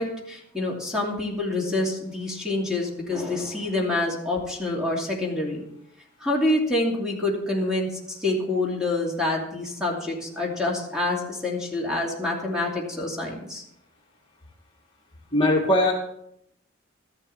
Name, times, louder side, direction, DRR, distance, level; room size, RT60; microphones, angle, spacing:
voice 1, 0.0-5.6 6.2-13.6, left 2 dB, 5° right, -2 dB, 2.6 m, -27 dB
voice 2, 15.3-15.9, left 1 dB, 25° left, -2 dB, 2.0 m, -20 dB
13.5 x 11.0 x 4.2 m, 0.75 s
head